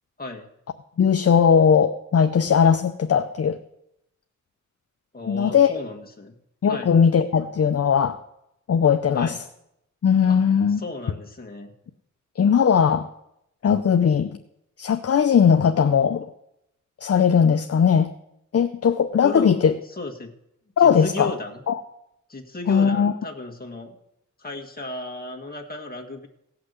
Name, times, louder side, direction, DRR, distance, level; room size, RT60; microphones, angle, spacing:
voice 1, 0.2-0.5 5.1-6.3 6.7-6.9 9.1-9.4 10.3-10.4 10.8-11.7 19.2-19.6 19.9-20.3 20.8-21.6 22.3-24.0 24.4-26.3, left 2 dB, 30° left, 2 dB, 1.8 m, -34 dB
voice 2, 1.0-3.6 5.3-5.7 6.6-8.2 8.7-9.3 10.0-10.8 12.4-13.1 13.6-14.4 14.8-16.3 17.0-18.1 18.5-19.8 20.8-21.3 21.7-21.8 22.7-23.1, left 7 dB, 50° left, 8 dB, 0.6 m, -19 dB
17.0 x 5.9 x 8.1 m, 0.82 s
wide cardioid pair, 95°, 30 cm